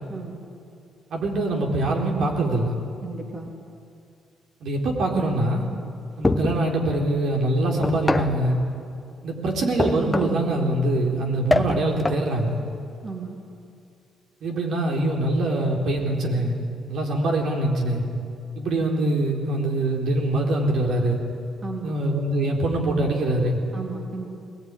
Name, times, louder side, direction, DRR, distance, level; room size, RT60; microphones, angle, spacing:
voice 1, 1.1-2.7 4.6-5.6 6.2-8.6 9.2-12.5 14.4-16.5 16.9-18.0 18.6-21.2 21.8-23.6, right 1 dB, 70° right, 0 dB, 4.1 m, -23 dB
voice 2, 3.0-3.5 13.0-13.4 21.6-21.9 23.7-24.3, right 4 dB, 40° right, 0 dB, 3.0 m, -34 dB
sound 1, 6.2-6.7 7.8-8.4 9.8-10.5 11.5-12.3, left 2 dB, 15° left, 1.0 m, -24 dB
20.5 x 19.5 x 9.8 m, 2.5 s
cardioid pair, 90°, 0 cm